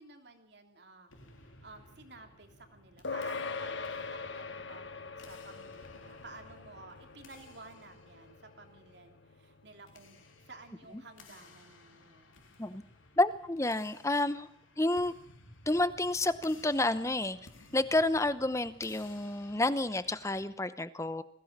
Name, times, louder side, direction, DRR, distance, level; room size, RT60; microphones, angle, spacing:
voice 1, 0.0-12.5, right 3 dB, 55° right, 5 dB, 3.2 m, -53 dB
sound 1, 1.1-20.5, left 3 dB, 90° left, 3.6 m, -58 dB
sound 2, 3.0-12.7, left 4 dB, 65° left, 1.3 m, -43 dB
voice 2, 13.2-14.5 14.8-15.1 15.7-17.4 17.7-21.2, left 2 dB, 15° left, 14 dB, 0.8 m, -29 dB
21.0 x 16.5 x 7.4 m, 0.66 s
head